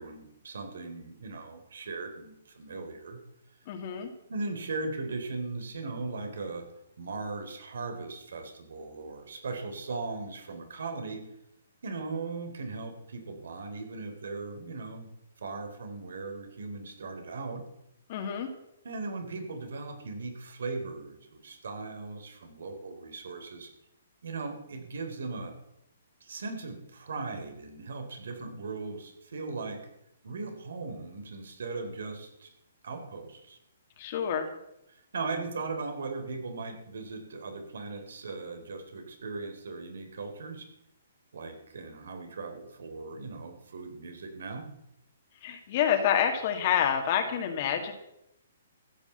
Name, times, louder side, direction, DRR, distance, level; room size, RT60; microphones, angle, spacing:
voice 1, 0.0-3.2 4.3-6.7 7.0-11.3 11.8-15.1 15.4-17.7 18.8-23.7 24.2-25.6 26.2-29.9 30.2-32.5 32.8-33.6 34.9-40.7 41.3-44.7, right 3 dB, 75° right, 7 dB, 3.6 m, -38 dB
voice 2, 3.7-4.1 18.1-18.5 34.0-34.5 45.4-47.9, left 9 dB, 35° left, 4 dB, 1.8 m, -28 dB
14.5 x 8.9 x 7.8 m, 0.81 s
hypercardioid pair, 165°, 0 cm